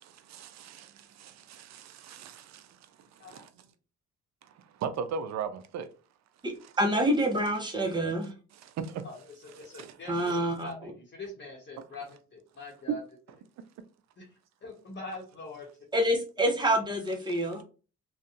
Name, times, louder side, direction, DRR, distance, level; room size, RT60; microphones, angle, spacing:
voice 1, 0.3-0.9 1.2-2.4 3.3-3.4 4.8-5.9 8.8-9.0, right 6 dB, 65° right, 0.5 m, -36 dB
voice 2, 6.4-8.3 10.1-10.9 15.9-17.6, right 1 dB, 15° right, 0.7 m, -27 dB
voice 3, 9.0-13.0 14.2-14.3 14.6-15.7 16.0-16.2, left 2 dB, 40° left, 0.9 m, -43 dB
2.6 x 2.2 x 2.4 m
cardioid pair, 90°, 30 cm